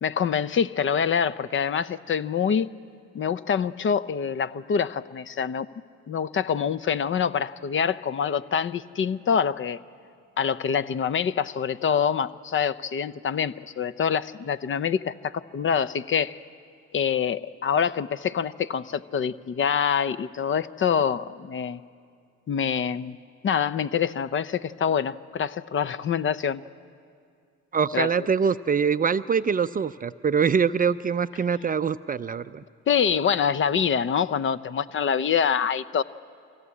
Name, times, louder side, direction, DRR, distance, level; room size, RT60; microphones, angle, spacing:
voice 1, 0.0-2.7 3.1-5.7 6.1-9.8 10.4-16.4 16.9-21.8 22.5-23.2 23.4-26.6 27.9-28.3 32.9-36.0, left 7 dB, 35° left, 16 dB, 0.6 m, -25 dB
voice 2, 27.7-32.6, right 6 dB, 25° right, 12 dB, 0.5 m, -24 dB
24.0 x 16.5 x 8.5 m, 2.2 s
supercardioid pair, 80°, 33 cm